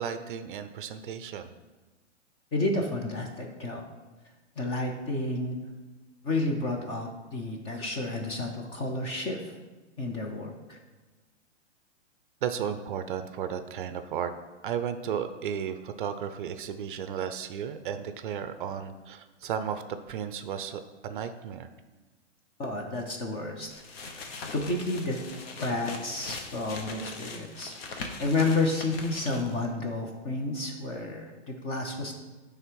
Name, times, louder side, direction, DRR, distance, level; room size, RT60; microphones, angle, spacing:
voice 1, 0.0-1.5 12.4-14.3 14.6-21.7, right 8 dB, 45° right, 10 dB, 0.5 m, -34 dB
voice 2, 2.5-3.8 4.6-5.6 6.2-9.5 10.0-10.8 22.6-23.7 24.0-24.2 24.5-25.2 25.6-32.1, left 2 dB, 15° left, 1 dB, 0.5 m, -31 dB
sound 1, 23.7-29.7, left 3 dB, 55° left, 1.1 m, -41 dB
8.9 x 3.4 x 4.6 m, 1.2 s
hypercardioid pair, 135°, 36 cm